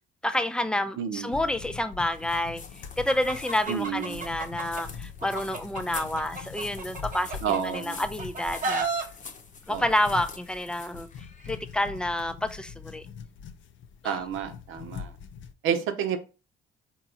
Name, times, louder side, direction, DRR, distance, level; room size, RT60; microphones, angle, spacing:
voice 1, 0.2-2.6 3.0-8.9 9.7-11.1 11.4-13.1 14.0-14.2, left 1 dB, 5° left, 0.5 m, -29 dB
voice 2, 1.0-1.4 3.7-4.2 7.4-8.0 9.7-9.8 14.0-15.1 15.6-16.2, right 8 dB, 90° right, 0.8 m, -30 dB
sound 1, 1.2-15.5, left 7 dB, 70° left, 0.6 m, -43 dB
sound 2, 2.0-11.9, left 5 dB, 40° left, 0.9 m, -46 dB
Chicken rooster, 3.1-4.8 5.2-7.8 8.2-9.0, right 3 dB, 40° right, 1.1 m, -32 dB
4.5 x 3.0 x 3.8 m
cardioid pair, 90°, 20 cm